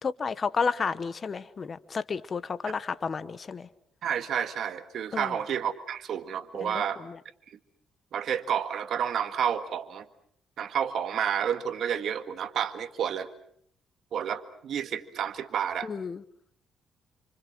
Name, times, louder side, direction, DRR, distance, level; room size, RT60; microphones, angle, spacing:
voice 1, 0.0-3.7 5.1-5.3 6.5-7.2 15.8-16.2, left 5 dB, 40° left, 14 dB, 1.1 m, -32 dB
voice 2, 4.0-7.0 7.5-7.6 8.1-10.0 10.6-13.3 14.1-15.9, right 8 dB, 65° right, 10 dB, 1.8 m, -30 dB
28.5 x 26.0 x 6.2 m, 0.64 s
cardioid pair, 90°, 0 cm